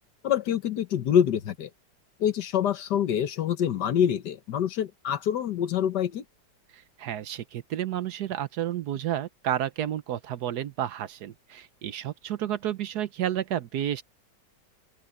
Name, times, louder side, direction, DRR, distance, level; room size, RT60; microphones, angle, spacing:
voice 1, 0.2-1.7 2.2-6.2, left 9 dB, 70° left, 1.7 m, -26 dB
voice 2, 6.7-14.0, right 11 dB, 70° right, 1.3 m, -31 dB
open air
omnidirectional pair, 1.9 m